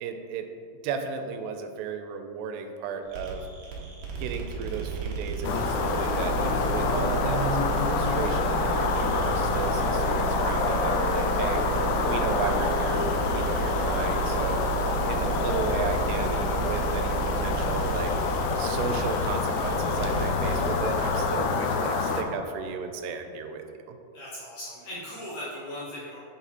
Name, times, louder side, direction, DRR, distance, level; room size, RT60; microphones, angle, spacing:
voice 1, 0.0-0.5 0.8-3.5 4.2-11.6 12.1-14.6 15.1-18.1 18.6-24.0, right 6 dB, 85° right, 6 dB, 2.6 m, -34 dB
sound 1, 3.1-21.3, right 6 dB, 70° right, 1.9 m, -32 dB
sound 2, 5.4-22.2, left 5 dB, 90° left, 2.7 m, -27 dB
voice 2, 24.1-26.2, left 1 dB, 65° left, -8 dB, 2.1 m, -38 dB
7.3 x 4.1 x 4.1 m, 2.5 s
omnidirectional pair, 4.7 m